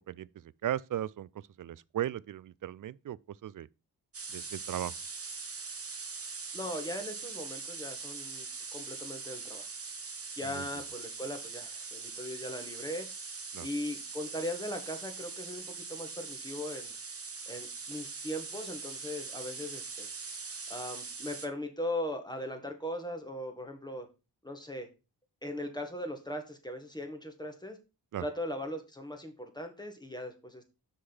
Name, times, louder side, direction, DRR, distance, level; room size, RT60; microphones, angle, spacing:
voice 1, 0.6-1.3 1.6-3.7 4.3-4.9 10.5-10.7 13.5-13.7 28.1-28.3, right 11 dB, 50° right, 0.4 m, -36 dB
sound 1, 4.1-21.5, right 4 dB, 35° right, 1.1 m, -42 dB
voice 2, 6.5-8.5 8.7-9.6 10.4-13.1 13.6-16.9 17.5-20.1 20.7-24.1 24.4-24.9 25.4-27.8 28.2-30.6, left 1 dB, 10° left, 1.7 m, -39 dB
6.3 x 3.9 x 6.1 m
cardioid pair, 70°, 42 cm